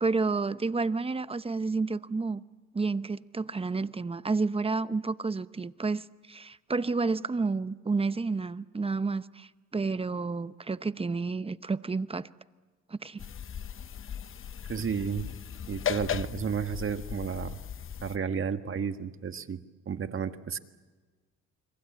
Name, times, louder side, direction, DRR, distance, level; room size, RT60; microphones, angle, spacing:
voice 1, 0.0-2.4 2.7-12.3 12.9-13.2 18.3-18.4, right 4 dB, 20° right, 0.8 m, -30 dB
sound 1, 13.2-18.2, left 9 dB, 45° left, 0.8 m, -37 dB
voice 2, 14.7-15.3 15.7-17.6 18.0-19.6 19.8-20.6, right 7 dB, 45° right, 1.6 m, -32 dB
29.5 x 23.0 x 8.5 m
cardioid pair, 90°, 30 cm